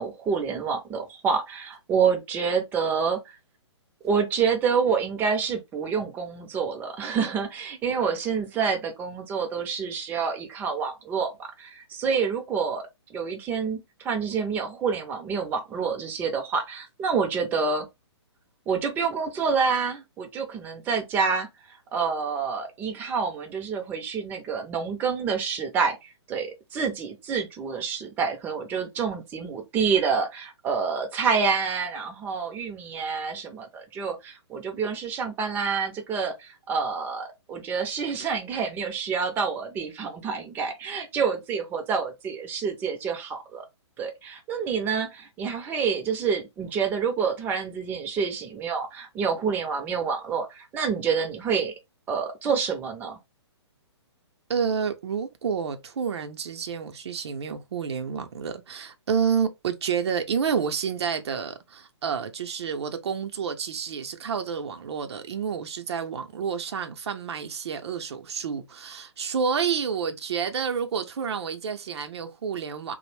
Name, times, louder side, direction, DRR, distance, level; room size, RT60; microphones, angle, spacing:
voice 1, 0.0-3.4 4.0-12.8 13.1-17.9 18.7-43.7 44.0-51.7 52.1-53.2, right 6 dB, 15° right, 0.4 m, -28 dB
voice 2, 54.5-73.0, right 6 dB, 65° right, 0.5 m, -29 dB
2.5 x 2.0 x 3.2 m
hypercardioid pair, 135°, 15 cm